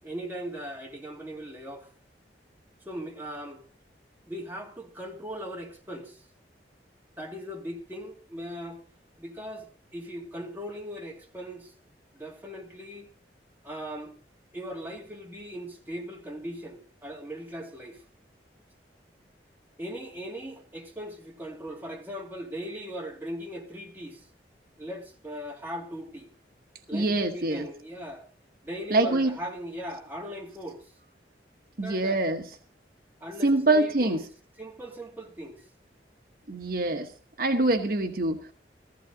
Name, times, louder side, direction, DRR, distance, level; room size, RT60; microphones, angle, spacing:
voice 1, 0.0-1.9 2.8-3.6 4.3-6.2 7.2-8.8 9.2-11.7 12.1-13.1 13.6-14.1 14.5-18.0 19.8-24.3 24.8-26.3 26.9-28.3 28.6-30.9 31.8-32.2 33.2-34.2 34.6-35.6, equal, 10° right, 2.6 m, -39 dB
voice 2, 26.9-27.6 28.9-29.3 31.8-32.5 33.4-34.2 36.5-37.1 37.4-38.5, right 2 dB, 55° right, 1.2 m, -24 dB
15.0 x 15.0 x 3.9 m
head